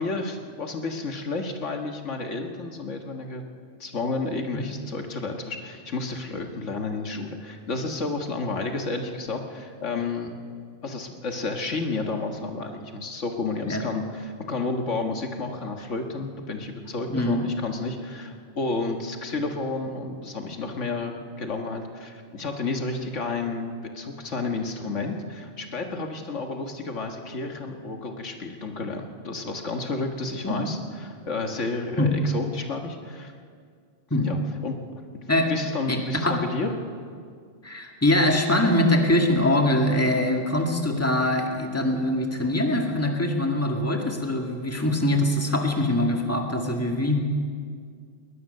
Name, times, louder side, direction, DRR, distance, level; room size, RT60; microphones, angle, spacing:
voice 1, 0.0-3.4 3.8-10.4 10.8-33.3 34.2-36.7, left 3 dB, 75° left, 4 dB, 1.9 m, -31 dB
voice 2, 17.1-17.4 30.4-30.5 32.0-32.2 34.1-34.3 35.3-35.5 35.9-36.4 37.6-47.2, left 1 dB, 10° left, 2 dB, 2.0 m, -23 dB
20.5 x 20.0 x 6.6 m, 2.1 s
omnidirectional pair, 1.3 m